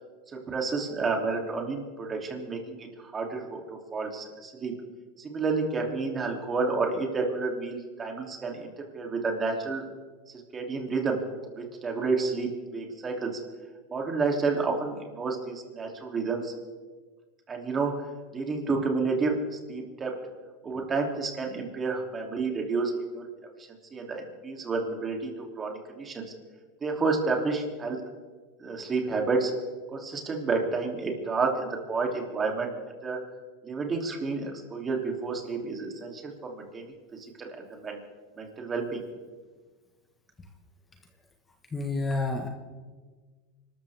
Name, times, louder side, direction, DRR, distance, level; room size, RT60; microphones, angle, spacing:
voice 1, 0.5-3.6 3.9-4.7 5.2-9.8 10.5-11.2 11.5-13.4 13.9-16.5 17.5-17.9 18.3-20.1 20.6-23.3 23.9-25.3 25.6-26.2 26.8-28.0 28.6-29.5 29.9-32.7 33.0-33.2 33.6-36.9 37.4-38.0 38.4-39.0, right 4 dB, 25° right, 1 dB, 3.1 m, -30 dB
voice 2, 41.7-42.5, left 2 dB, 20° left, 4 dB, 1.6 m, -29 dB
25.5 x 13.5 x 3.6 m, 1.4 s
supercardioid pair, 115°, 0 cm